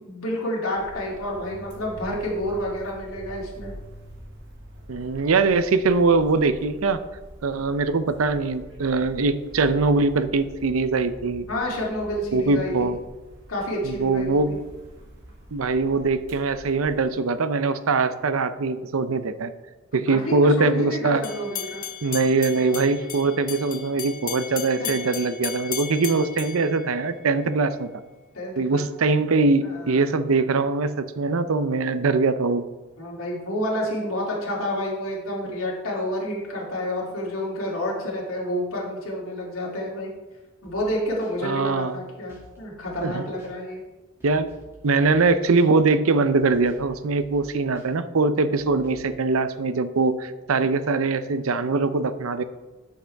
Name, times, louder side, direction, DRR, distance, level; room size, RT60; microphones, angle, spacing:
voice 1, 0.0-3.7 11.5-12.9 13.5-14.6 20.1-21.8 24.8-25.1 28.3-28.9 29.6-30.0 33.0-40.1 40.6-43.8, left 1 dB, 85° left, -4 dB, 2.9 m, -29 dB
sound 1, 0.8-17.1, equal, 60° right, 1.6 m, -45 dB
voice 2, 4.9-7.0 7.4-11.5 12.3-13.0 13.8-14.6 15.5-19.5 19.9-21.2 22.0-27.9 28.6-32.6 41.4-42.0 43.0-43.2 44.2-44.5 44.8-52.4, right 3 dB, 80° right, 12 dB, 0.6 m, -22 dB
sound 2, 21.2-27.5, left 9 dB, 40° left, 0.6 m, -35 dB
sound 3, 40.6-40.9 41.2-41.3 42.3-42.6 42.8-43.1 43.4-43.5 44.2-44.7 45.0-45.3 45.6-45.7 46.4-46.9 47.2-47.5 47.7-47.9 48.6-49.1, left 1 dB, 15° right, 2.4 m, -50 dB
12.5 x 6.4 x 3.5 m, 1.1 s
head